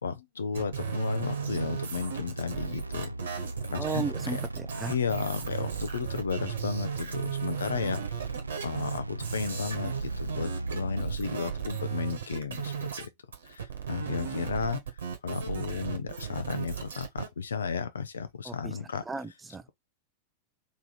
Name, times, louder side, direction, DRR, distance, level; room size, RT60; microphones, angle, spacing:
voice 1, 0.0-3.4 3.7-4.4 4.9-8.3 8.6-13.1 13.4-14.8 15.2-19.0, left 6 dB, 70° left, 0.7 m, -34 dB
sound 1, 0.5-13.1 13.3-17.3, right 7 dB, 65° right, 1.3 m, -35 dB
sound 2, 0.8-11.2, right 2 dB, 85° right, 0.4 m, -39 dB
voice 2, 3.8-4.9 18.5-18.7 19.1-19.6, right 4 dB, 15° right, 0.6 m, -34 dB
3.5 x 3.1 x 4.1 m
figure-of-eight pair, 90°, 0 cm